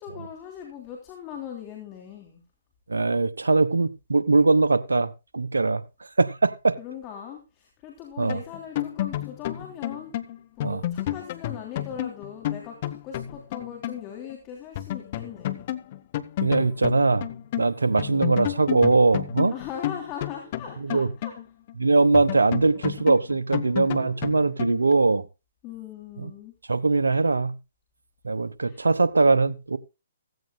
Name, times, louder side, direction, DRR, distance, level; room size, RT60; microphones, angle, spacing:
voice 1, 0.0-2.4 6.8-10.1 10.6-15.7 18.0-18.4 19.5-21.3 25.6-26.5 28.7-28.9, left 8 dB, 30° left, 3.3 m, -40 dB
voice 2, 2.9-5.8 6.2-6.8 8.2-8.4 10.6-10.8 16.4-17.3 17.6-19.5 20.8-21.1 21.8-25.2 26.2-26.3 26.7-27.5 28.2-29.8, right 3 dB, 85° right, 0.9 m, -21 dB
sound 1, 8.3-14.1 14.3-14.4 14.8-17.7 18.0-21.7 22.1-24.9, left 12 dB, 45° left, 1.0 m, -31 dB
16.0 x 15.0 x 2.3 m
hypercardioid pair, 135°, 0 cm